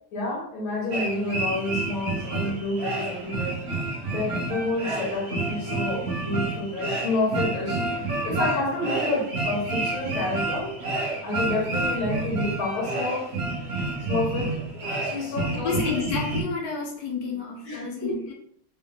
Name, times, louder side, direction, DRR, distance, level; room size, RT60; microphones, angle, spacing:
voice 1, 0.1-3.6 4.1-10.7 11.2-13.3 14.1-14.6 14.9-15.8 17.7-18.2, left 2 dB, 85° left, -4 dB, 1.9 m, -29 dB
sound 1, 0.9-16.4, right 2 dB, 80° right, 0.5 m, -29 dB
voice 2, 15.6-18.3, left 4 dB, 65° left, 0 dB, 1.3 m, -30 dB
3.6 x 3.6 x 2.3 m, 0.67 s
omnidirectional pair, 2.2 m